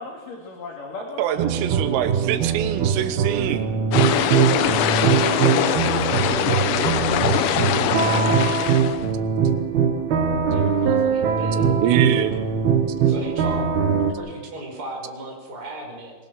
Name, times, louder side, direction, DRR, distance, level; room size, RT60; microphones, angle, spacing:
voice 1, 0.0-1.6 5.1-8.0, left 3 dB, 45° left, -1 dB, 3.8 m, -35 dB
voice 2, 1.2-3.6 11.8-12.3, right 12 dB, 90° right, 9 dB, 3.8 m, -24 dB
sound 1, 1.4-14.1, right 6 dB, 60° right, 3.1 m, -21 dB
sound 2, 3.9-9.1, left 11 dB, 75° left, 3.2 m, -23 dB
voice 3, 10.5-11.8 13.0-13.6 14.2-16.1, right 2 dB, 20° right, 0 dB, 5.5 m, -35 dB
23.5 x 23.5 x 6.3 m, 1.3 s
omnidirectional pair, 5.8 m